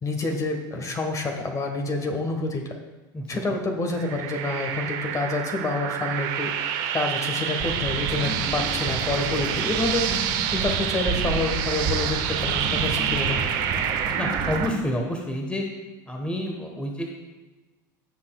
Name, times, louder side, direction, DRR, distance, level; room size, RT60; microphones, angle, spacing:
voice 1, 0.0-2.8 3.3-6.5 6.9-10.1 10.5-13.4, left 2 dB, 30° left, 3 dB, 1.6 m, -28 dB
sound 1, 3.9-14.7, right 9 dB, 65° right, 1.0 m, -28 dB
sound 2, 7.6-14.7, right 3 dB, 45° right, 2.0 m, -31 dB
voice 2, 14.2-15.6 16.1-17.1, equal, 10° left, 1 dB, 1.4 m, -29 dB
17.0 x 5.8 x 2.4 m, 1.2 s
hypercardioid pair, 90°, 11 cm